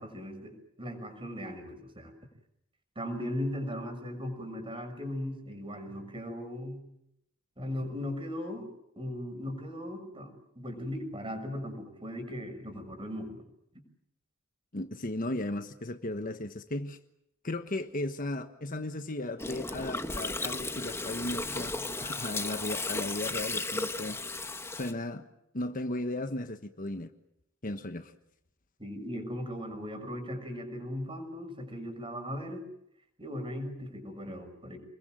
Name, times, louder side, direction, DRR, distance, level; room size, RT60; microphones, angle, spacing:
voice 1, 0.0-2.1 2.9-6.8 7.6-8.7 9.0-13.4 28.8-32.6 33.2-34.8, left 1 dB, 25° right, 7 dB, 6.4 m, -38 dB
voice 2, 14.7-17.0 17.4-21.7 22.0-25.3 25.5-27.1 27.6-28.1, left 1 dB, 40° left, 8 dB, 1.3 m, -36 dB
Gurgling, 19.4-24.9, left 3 dB, 10° left, 1.3 m, -35 dB
29.0 x 22.0 x 7.7 m, 0.80 s
head